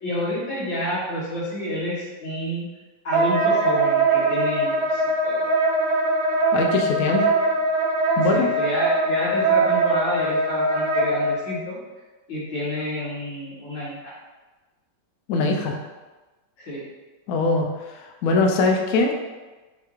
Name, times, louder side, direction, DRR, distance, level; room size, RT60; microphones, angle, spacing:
voice 1, 0.0-2.7 3.0-5.4 8.3-11.8 12.3-14.1 16.6-16.8, left 1 dB, 70° left, -8 dB, 2.2 m, -29 dB
Wind instrument woodwind instrument, 3.1-11.3, right 2 dB, 70° right, 1.1 m, -21 dB
voice 2, 6.5-7.3 8.2-8.5 15.3-15.8 17.3-17.7 18.2-19.1, left 3 dB, 85° left, 2 dB, 0.7 m, -21 dB
5.6 x 2.4 x 3.0 m, 1.2 s
omnidirectional pair, 2.1 m